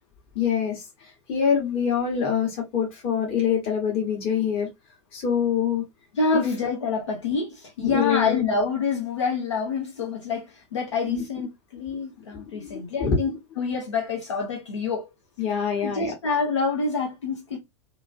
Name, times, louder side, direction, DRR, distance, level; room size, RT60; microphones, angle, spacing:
voice 1, 0.3-0.8 1.3-4.7 5.1-5.8 6.3-6.5 7.0-7.1 7.8-8.5 11.0-11.2 12.5-13.2 15.4-16.1, left 7 dB, 40° left, 1.3 m, -25 dB
voice 2, 6.1-13.3 13.6-15.1 15.8-17.6, left 4 dB, 70° left, 0.8 m, -27 dB
3.0 x 2.6 x 2.4 m
figure-of-eight pair, 90°, 16 cm